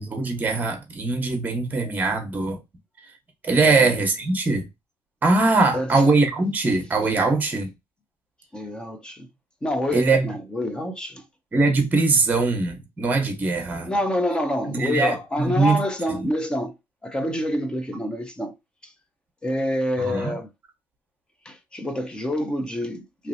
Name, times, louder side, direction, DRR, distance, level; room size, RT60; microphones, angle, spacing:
voice 1, 0.0-2.6 3.4-4.7 5.2-7.7 9.9-10.3 11.5-13.9 14.7-15.8 16.1-16.3 20.0-20.4, right 3 dB, 20° right, 0.9 m, -22 dB
voice 2, 8.5-9.3 9.6-11.2 13.8-16.7 17.0-18.6 18.8-18.9 19.4-20.5 21.5-23.3, left 1 dB, 10° left, 0.5 m, -27 dB
3.0 x 2.8 x 2.6 m
cardioid pair, 150°, 8 cm